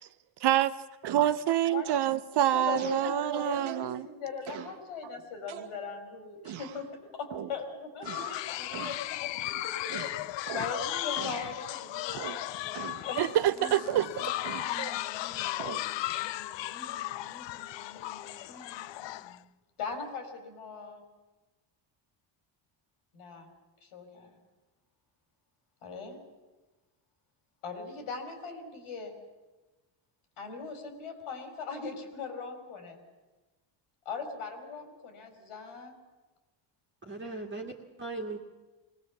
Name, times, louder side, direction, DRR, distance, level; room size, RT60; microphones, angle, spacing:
sound 1, 1.0-1.4 1.9-2.1 2.7-3.1 3.7-3.9 4.5-4.8 5.5-6.0 6.4-6.8 7.3-7.6 8.0-8.5 8.7-9.1 9.9-10.8 11.2-11.6 12.2-12.5 12.7-13.1 13.9-14.8 15.6-15.9, right 9 dB, 75° right, 1.5 m, -42 dB
voice 1, 1.1-4.1 13.2-14.2 14.8-15.0, right 11 dB, 55° right, 13 dB, 0.7 m, -26 dB
voice 2, 2.3-9.0 9.3-13.2 19.8-21.0 23.1-23.5 23.8-24.3 25.8-26.2 27.6-29.1 30.4-33.0 34.1-35.9, left 5 dB, 80° left, 5 dB, 4.0 m, -40 dB
sound 2, 8.1-19.4, left 15 dB, 65° left, 0.6 m, -36 dB
sound 3, 13.0-19.5, left 2 dB, 25° left, 2.0 m, -52 dB
voice 3, 37.1-38.4, right 3 dB, 25° right, 0 dB, 2.1 m, -38 dB
21.5 x 18.0 x 7.1 m, 1.2 s
cardioid pair, 115°, 49 cm